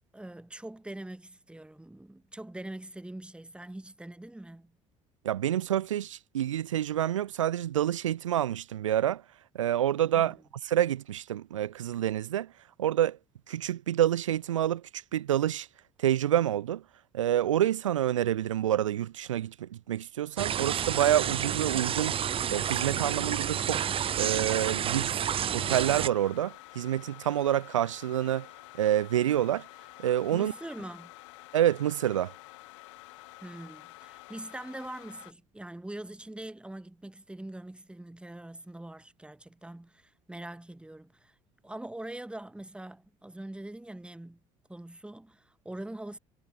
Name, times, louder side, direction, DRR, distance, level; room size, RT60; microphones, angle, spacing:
voice 1, 0.1-4.8 10.1-10.4 30.3-31.1 33.4-41.3 41.6-44.4 44.7-46.2, right 1 dB, 5° right, 1.5 m, -43 dB
voice 2, 5.2-9.2 9.5-10.4 10.6-12.5 12.8-13.2 13.5-15.7 16.0-16.8 17.1-22.1 22.5-23.8 24.2-25.2 25.5-28.5 28.8-29.7 30.0-30.5 31.5-32.3, right 11 dB, 75° right, 0.5 m, -28 dB
sound 1, 20.4-26.1, right 9 dB, 35° right, 0.7 m, -30 dB
sound 2, 25.6-35.3, left 23 dB, 65° left, 6.9 m, -50 dB
figure-of-eight pair, 55°, 16 cm